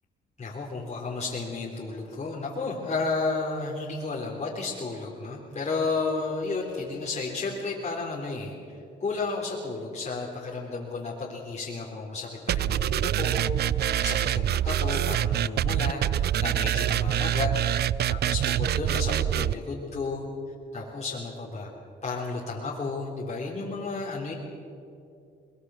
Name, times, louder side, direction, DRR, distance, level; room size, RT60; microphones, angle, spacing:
voice 1, 0.4-8.6 9.0-13.5 14.0-17.5 18.1-20.3 20.7-21.7 22.0-24.3, left 3 dB, 35° left, -4 dB, 3.7 m, -32 dB
sound 1, 12.5-19.5, right 11 dB, 55° right, 0.5 m, -25 dB
22.0 x 21.0 x 6.4 m, 2.6 s
cardioid pair, 90°, 20 cm